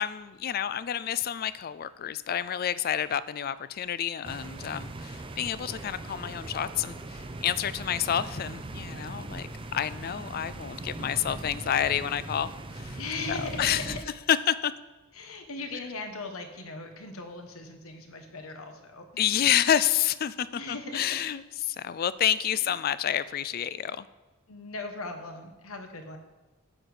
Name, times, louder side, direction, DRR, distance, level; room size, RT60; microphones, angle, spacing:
voice 1, 0.0-13.0 13.3-13.8 14.3-14.7 19.2-21.4 21.7-24.0, left 10 dB, 45° left, 16 dB, 0.3 m, -29 dB
sound 1, 4.2-14.0, right 2 dB, 25° right, 0.6 m, -40 dB
voice 2, 13.0-14.0 15.1-19.4 20.5-21.2 22.5-22.8 24.5-26.2, left 3 dB, 75° left, 6 dB, 1.2 m, -39 dB
8.7 x 8.1 x 4.9 m, 1.2 s
head